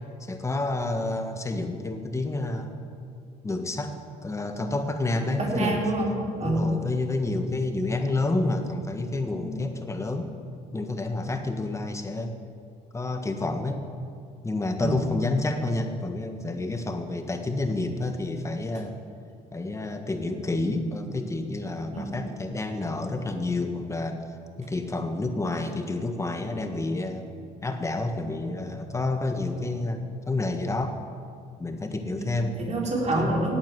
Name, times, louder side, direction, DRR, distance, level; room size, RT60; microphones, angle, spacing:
voice 1, 0.2-2.8 3.4-5.8 6.4-10.3 10.7-12.3 12.9-13.8 14.4-18.9 19.5-24.2 24.6-27.3 27.6-31.0 31.6-32.6 33.2-33.3, left 2 dB, 15° left, 6 dB, 1.5 m, -29 dB
voice 2, 5.3-6.7 9.3-9.5 14.8-15.0 21.9-22.1 32.2-33.6, right 2 dB, 40° right, -2 dB, 4.2 m, -27 dB
17.5 x 8.8 x 7.5 m, 2.3 s
cardioid pair, 110°, 17 cm